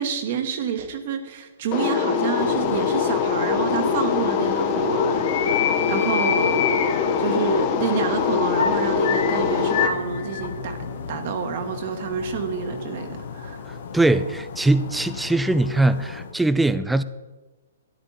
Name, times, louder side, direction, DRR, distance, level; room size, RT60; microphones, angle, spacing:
voice 1, 0.0-6.8 7.2-13.6, right 6 dB, 55° right, 6 dB, 1.5 m, -29 dB
sound 1, 1.7-9.9, left 6 dB, 40° left, 1.1 m, -23 dB
sound 2, 2.4-16.3, left 7 dB, 60° left, 1.2 m, -31 dB
voice 2, 13.9-17.0, right 2 dB, 5° right, 14 dB, 0.5 m, -21 dB
12.5 x 10.5 x 4.2 m, 1.2 s
hypercardioid pair, 130°, 0 cm